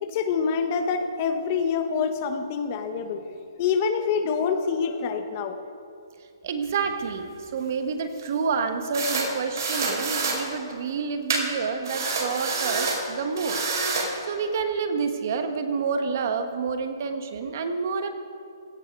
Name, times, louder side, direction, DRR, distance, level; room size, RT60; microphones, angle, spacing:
voice 1, 0.0-5.6, left 6 dB, 25° left, 7 dB, 0.9 m, -26 dB
voice 2, 6.4-13.6 14.3-18.1, right 5 dB, 40° right, 7 dB, 1.2 m, -28 dB
sound 1, 6.8-7.1 8.2-8.3 8.9-9.3 9.6-10.4 11.3-11.4 11.8-13.0 13.4-14.1, right 4 dB, 60° right, 4.7 m, -27 dB
17.0 x 14.0 x 5.3 m, 2.4 s
hypercardioid pair, 170°, 2 cm